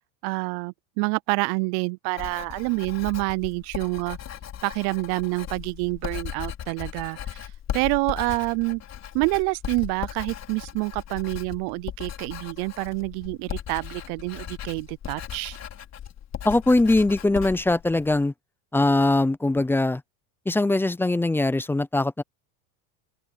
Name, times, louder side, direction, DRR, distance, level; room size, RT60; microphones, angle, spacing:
voice 1, 0.2-4.2 4.6-8.8 9.1-15.6, right 28 dB, 60° right, 0.5 m, -27 dB
Writing, 2.2-18.2, left 10 dB, 35° left, 4.6 m, -37 dB
voice 2, 16.4-18.3 18.7-20.0 20.5-22.2, left 2 dB, 5° left, 0.5 m, -21 dB
open air
supercardioid pair, 130°, 44 cm